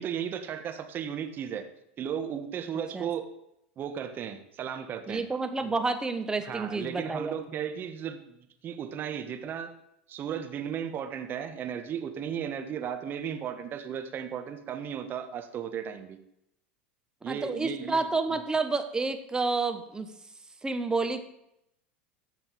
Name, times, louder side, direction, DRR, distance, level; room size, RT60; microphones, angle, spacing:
voice 1, 0.0-1.6 2.0-3.3 3.8-5.2 5.6-5.7 6.4-9.7 10.1-16.2 17.2-18.0 18.3-18.4, right 8 dB, 35° right, 8 dB, 1.4 m, -35 dB
voice 2, 5.1-7.4 17.3-20.1 20.6-21.2, right 3 dB, 15° right, 8 dB, 1.1 m, -29 dB
14.5 x 5.3 x 5.4 m, 0.81 s
hypercardioid pair, 95°, 6 cm